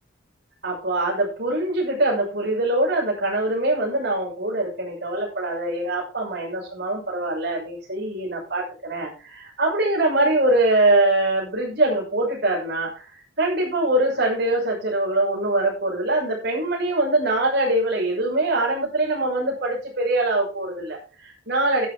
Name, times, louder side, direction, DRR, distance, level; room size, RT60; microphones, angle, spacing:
voice 1, 0.6-21.9, right 2 dB, 50° right, -2 dB, 6.3 m, -23 dB
12.0 x 11.0 x 3.6 m, 0.34 s
head